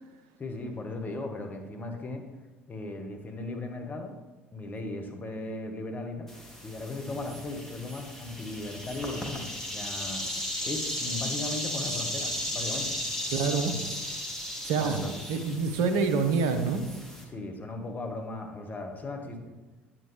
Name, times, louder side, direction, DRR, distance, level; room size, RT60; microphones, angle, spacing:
voice 1, 0.4-2.3 2.7-4.2 4.5-6.3 6.6-10.2 10.6-13.0 14.8-15.2 17.3-19.6, left 2 dB, 30° left, 3 dB, 1.4 m, -37 dB
sound 1, 6.3-17.2, left 1 dB, 5° left, 1.8 m, -35 dB
voice 2, 13.3-13.9 14.6-15.0 15.3-16.8, right 5 dB, 65° right, 7 dB, 1.0 m, -26 dB
9.4 x 7.5 x 3.3 m, 1.2 s
hypercardioid pair, 65°, 6 cm